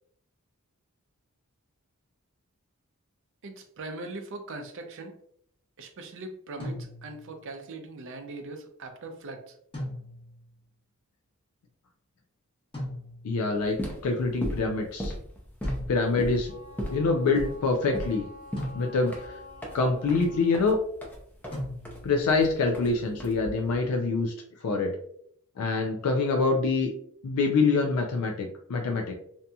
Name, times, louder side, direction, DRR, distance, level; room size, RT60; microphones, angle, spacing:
voice 1, 3.4-5.1 5.8-9.5, right 2 dB, 60° right, 6 dB, 0.5 m, -40 dB
sound 1, 6.6-7.4 9.7-10.5 12.7-13.5 15.6-16.4 18.6-19.3 21.5-22.3, left 1 dB, 25° left, 1.0 m, -38 dB
voice 2, 13.2-15.1 15.9-16.5 16.9-18.3 18.7-19.4 19.7-20.8 22.0-24.3 24.6-24.9 25.6-26.9 27.2-29.2, left 3 dB, 75° left, 2 dB, 0.4 m, -25 dB
sound 2, 13.6-23.8, equal, 10° left, 0.5 m, -37 dB
Wind instrument woodwind instrument, 16.4-20.7, left 2 dB, 20° right, 0.9 m, -48 dB
2.7 x 2.6 x 2.2 m, 0.66 s
head